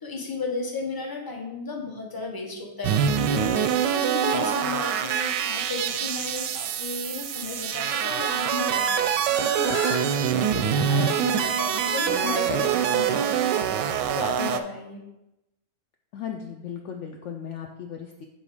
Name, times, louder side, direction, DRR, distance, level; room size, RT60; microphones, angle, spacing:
voice 1, 0.0-15.0, left 4 dB, 15° left, 0 dB, 0.8 m, -34 dB
sound 1, 2.8-14.6, right 8 dB, 90° right, 1.2 m, -25 dB
Fowl / Bird, 8.8-14.1, left 1 dB, 40° left, 1.3 m, -40 dB
voice 2, 12.0-12.4 16.1-18.2, left 8 dB, 75° left, 2 dB, 0.6 m, -36 dB
7.4 x 3.9 x 4.9 m, 0.93 s
omnidirectional pair, 1.8 m